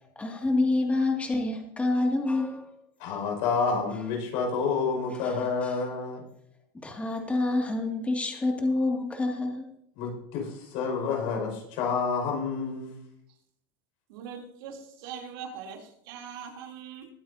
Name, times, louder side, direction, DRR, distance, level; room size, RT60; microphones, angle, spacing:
voice 1, 0.2-2.7 5.6-5.7 6.8-9.7, left 2 dB, 10° left, 2.4 m, -27 dB
voice 2, 3.0-6.2 10.0-12.9, left 5 dB, 60° left, 5.8 m, -29 dB
voice 3, 14.1-17.1, right 7 dB, 75° right, 3.3 m, -41 dB
21.5 x 9.3 x 2.8 m
supercardioid pair, 130°, 12 cm